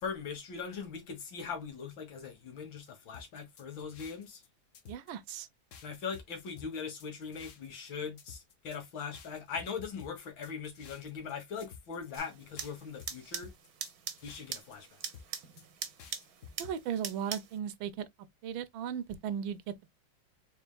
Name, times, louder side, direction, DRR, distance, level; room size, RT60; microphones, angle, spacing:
voice 1, 0.0-4.4 5.8-13.5 14.2-14.9, left 6 dB, 70° left, 2.0 m, -40 dB
sound 1, 3.1-4.5 4.7-5.4 5.7-7.9 8.2-8.8 9.1-11.3 11.6-12.2 12.6-14.8 15.0-15.6 16.0-16.7, left 6 dB, 55° left, 0.8 m, -52 dB
voice 2, 4.9-5.5 16.6-18.1 18.4-19.6, right 8 dB, 80° right, 1.4 m, -36 dB
sound 2, 12.2-17.6, right 8 dB, 60° right, 1.1 m, -43 dB
4.3 x 3.8 x 2.2 m
omnidirectional pair, 2.2 m